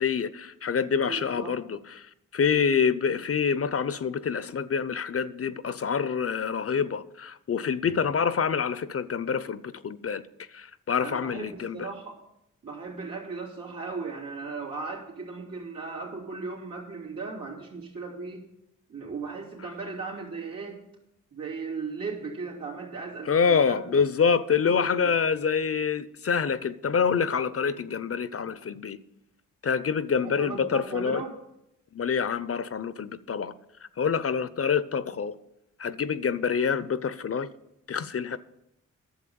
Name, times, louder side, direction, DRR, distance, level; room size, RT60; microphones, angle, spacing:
voice 1, 0.0-10.2 10.5-11.9 23.3-29.0 29.6-31.2 31.9-33.6 34.0-35.4 35.8-37.5 37.9-38.4, left 6 dB, 45° left, 0.7 m, -26 dB
voice 2, 1.1-1.6 11.0-12.2 12.6-18.4 18.9-20.8 21.3-24.0 24.6-25.1 30.1-31.4, right 4 dB, 90° right, 3.2 m, -37 dB
11.5 x 7.2 x 7.0 m
cardioid pair, 55°, 33 cm